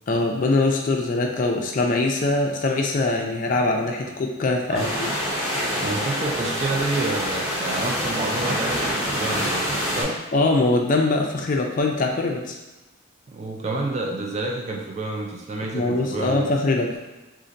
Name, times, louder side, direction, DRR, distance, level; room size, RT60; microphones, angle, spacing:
voice 1, 0.1-5.1 5.4-5.6 10.3-12.6 15.7-17.0, left 2 dB, 40° left, 2 dB, 0.4 m, -22 dB
sound 1, 4.7-10.0, equal, 15° right, 0.8 m, -26 dB
voice 2, 5.8-10.2 13.3-16.5, right 2 dB, 35° right, 0 dB, 0.4 m, -29 dB
4.0 x 2.5 x 2.5 m, 1.1 s
head